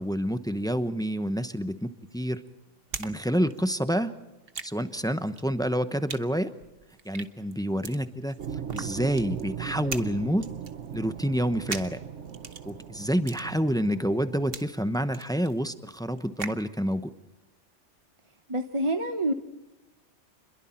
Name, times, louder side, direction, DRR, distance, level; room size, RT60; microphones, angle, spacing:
voice 1, 0.0-2.4 3.0-4.1 4.6-6.5 7.0-8.4 8.7-10.5 10.9-12.0 12.6-17.1, equal, 5° left, 10 dB, 0.8 m, -28 dB
sound 1, 1.8-3.2 3.4-16.7, right 5 dB, 50° right, 1.3 m, -41 dB
sound 2, 8.4-14.6, right 8 dB, 70° right, 1.3 m, -38 dB
voice 2, 18.5-19.3, right 1 dB, 25° right, 6 dB, 1.0 m, -28 dB
28.0 x 22.0 x 4.4 m, 1.0 s
omnidirectional pair, 1.3 m